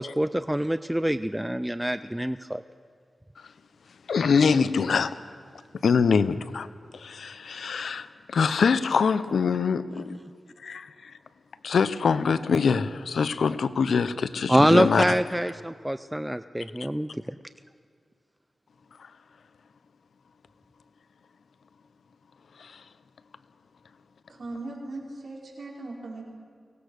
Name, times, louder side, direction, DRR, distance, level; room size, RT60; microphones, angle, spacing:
voice 1, 0.0-2.6 9.9-10.2 14.5-17.1, right 1 dB, 5° right, 12 dB, 0.4 m, -25 dB
voice 2, 4.1-5.1 5.8-6.7 6.9-10.2 10.6-11.1 11.6-15.0 22.6-22.8, left 5 dB, 90° left, 14 dB, 0.7 m, -24 dB
voice 3, 24.3-26.2, right 2 dB, 60° right, -3 dB, 5.1 m, -38 dB
23.5 x 18.0 x 6.5 m, 2.1 s
wide cardioid pair, 90°, 0 cm